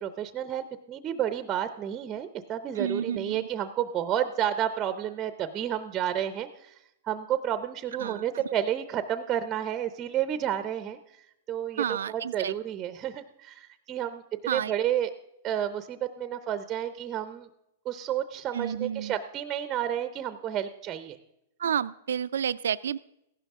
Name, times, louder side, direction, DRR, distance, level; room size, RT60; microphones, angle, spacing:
voice 1, 0.0-6.7 7.0-11.0 11.5-15.1 15.4-17.5 17.8-21.2, right 10 dB, 20° right, 11 dB, 0.5 m, -31 dB
voice 2, 2.8-3.5 8.0-8.2 11.8-12.5 14.5-14.7 18.5-19.2 21.6-23.0, right 8 dB, 90° right, 16 dB, 0.3 m, -30 dB
15.0 x 11.5 x 3.6 m, 0.84 s
hypercardioid pair, 155°, 0 cm